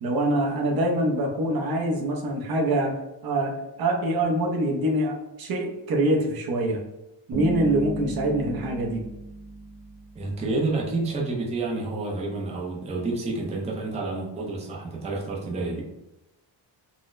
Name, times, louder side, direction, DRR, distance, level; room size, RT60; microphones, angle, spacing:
voice 1, 0.0-2.9 3.2-3.5 3.8-6.8 7.3-9.0, right 1 dB, 55° right, 0 dB, 0.7 m, -24 dB
Bass guitar, 7.3-10.4, right 1 dB, 35° right, 0.9 m, -34 dB
voice 2, 10.2-15.8, right 3 dB, 15° right, -2 dB, 0.4 m, -29 dB
3.9 x 2.0 x 2.4 m, 0.93 s
wide cardioid pair, 170°, 45 cm